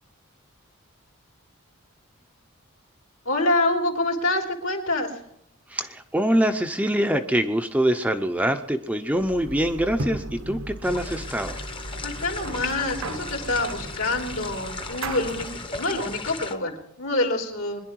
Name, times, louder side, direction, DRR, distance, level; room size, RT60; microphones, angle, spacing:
voice 1, 3.2-5.1 12.0-17.8, left 2 dB, 70° left, 2 dB, 3.2 m, -26 dB
voice 2, 5.7-11.6, equal, 5° right, 6 dB, 0.7 m, -24 dB
sound 1, 9.1-15.6, right 2 dB, 70° right, 1.0 m, -36 dB
sound 2, 10.8-16.5, left 3 dB, 25° left, 1.0 m, -36 dB
23.0 x 11.0 x 4.6 m, 0.74 s
head